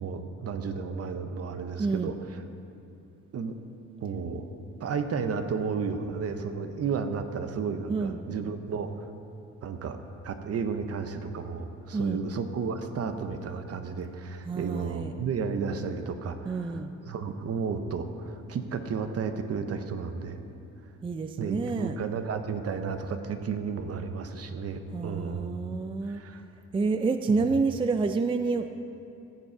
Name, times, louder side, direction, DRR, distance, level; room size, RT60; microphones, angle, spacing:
voice 1, 0.0-2.2 3.3-3.6 4.0-4.5 4.8-9.1 9.6-10.0 10.2-20.4 21.4-25.6 26.0-26.4, right 5 dB, 55° right, 8 dB, 0.9 m, -33 dB
voice 2, 1.8-2.1 7.9-8.2 11.9-12.2 14.5-15.2 16.5-16.9 21.0-22.0 24.9-26.2 26.7-28.7, right 4 dB, 20° right, 8 dB, 0.4 m, -28 dB
15.0 x 7.1 x 4.5 m, 2.7 s
cardioid pair, 90°, 30 cm